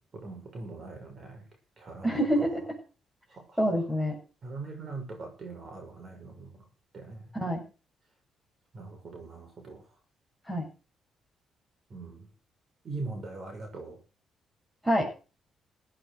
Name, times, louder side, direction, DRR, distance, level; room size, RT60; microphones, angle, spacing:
voice 1, 0.1-1.4 1.8-2.5 4.4-6.5 6.9-7.2 8.7-9.8 11.9-12.2 12.8-14.0, right 3 dB, 45° right, 2 dB, 6.4 m, -41 dB
voice 2, 2.0-2.6 3.6-4.2 7.3-7.6 10.5-10.7 14.8-15.2, equal, 5° right, 1 dB, 7.6 m, -27 dB
16.5 x 8.8 x 6.7 m, 0.35 s
cardioid pair, 90°, 0 cm